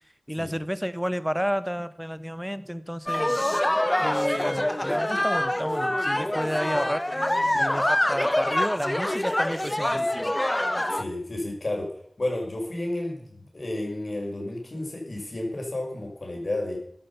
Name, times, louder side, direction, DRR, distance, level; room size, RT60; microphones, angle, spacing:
voice 1, 0.3-3.4 4.0-7.0 7.5-10.3, equal, 5° right, 14 dB, 1.0 m, -31 dB
sound 1, 3.1-11.0, left 1 dB, 20° left, 0.9 m, -25 dB
voice 2, 10.9-11.9 12.2-16.8, left 1 dB, 60° left, 1 dB, 5.5 m, -31 dB
15.0 x 11.0 x 5.6 m, 0.70 s
wide cardioid pair, 50°, 0 cm